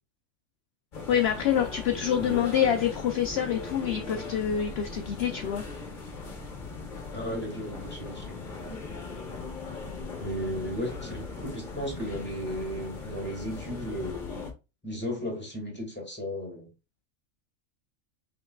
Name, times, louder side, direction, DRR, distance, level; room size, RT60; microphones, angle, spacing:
sound 1, 0.9-14.5, left 4 dB, 40° left, 1.1 m, -39 dB
voice 1, 1.1-5.6, left 9 dB, 60° left, 0.7 m, -26 dB
voice 2, 1.9-2.7 7.1-8.4 10.2-14.4 14.8-16.7, equal, 10° left, 2.1 m, -35 dB
5.6 x 3.8 x 2.3 m
omnidirectional pair, 1.4 m